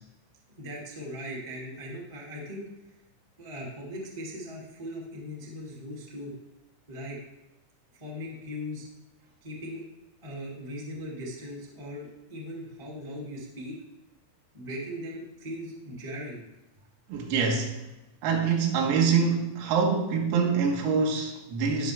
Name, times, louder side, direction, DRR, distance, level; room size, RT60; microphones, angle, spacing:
voice 1, 0.6-2.6 3.4-6.3 6.9-7.2 8.0-8.8 9.4-9.8 10.2-13.8 14.5-16.4, equal, 20° right, -4 dB, 0.7 m, -39 dB
voice 2, 17.1-17.8 18.2-21.9, right 5 dB, 85° right, 1 dB, 4.3 m, -25 dB
19.0 x 6.7 x 3.6 m, 0.95 s
omnidirectional pair, 6.0 m